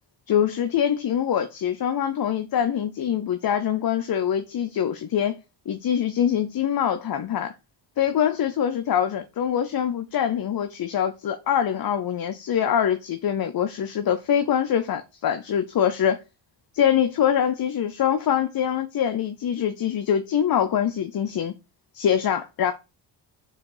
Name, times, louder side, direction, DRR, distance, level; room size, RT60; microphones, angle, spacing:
voice 1, 0.3-5.4 5.7-7.5 8.0-16.2 16.7-21.5 21.9-22.7, left 9 dB, 50° left, 0.7 m, -24 dB
4.9 x 4.2 x 4.9 m
supercardioid pair, 55°, 48 cm